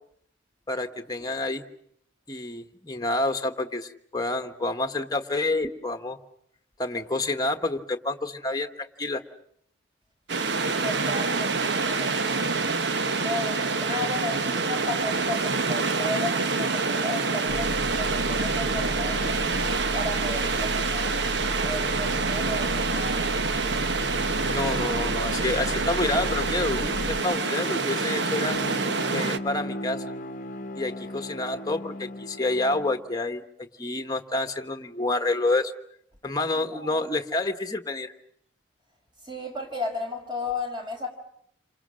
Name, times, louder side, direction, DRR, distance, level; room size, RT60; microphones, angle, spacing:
voice 1, 0.7-1.6 2.3-6.2 6.8-9.2 24.4-28.6 29.1-30.0 30.7-33.4 33.8-35.7 36.2-38.1, left 2 dB, 20° left, 6 dB, 1.3 m, -28 dB
sound 1, 10.3-29.4, right 4 dB, 60° right, 1.0 m, -27 dB
voice 2, 10.4-12.4 13.1-19.4 19.9-21.2 21.6-23.3 36.5-37.1 39.2-41.1, left 2 dB, 25° right, 3 dB, 5.3 m, -34 dB
Deep Bass (Increase volume), 17.5-27.2, left 1 dB, 70° left, 0.9 m, -34 dB
Bowed string instrument, 25.3-33.1, left 1 dB, 45° left, 1.0 m, -37 dB
28.5 x 26.0 x 6.4 m, 0.69 s
head